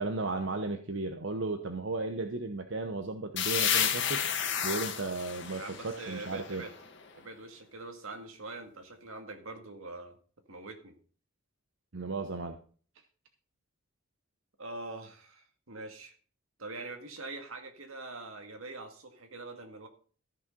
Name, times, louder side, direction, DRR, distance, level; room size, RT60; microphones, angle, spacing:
voice 1, 0.0-4.2 4.6-6.6 11.9-12.6, right 3 dB, 60° right, 6 dB, 0.9 m, -35 dB
sound 1, 3.4-7.0, left 9 dB, 55° left, 1.6 m, -31 dB
voice 2, 5.5-6.7 7.1-10.2 10.5-10.9 14.6-16.1 16.6-19.9, right 2 dB, 80° right, 6 dB, 1.9 m, -44 dB
14.0 x 6.4 x 5.3 m, 0.42 s
head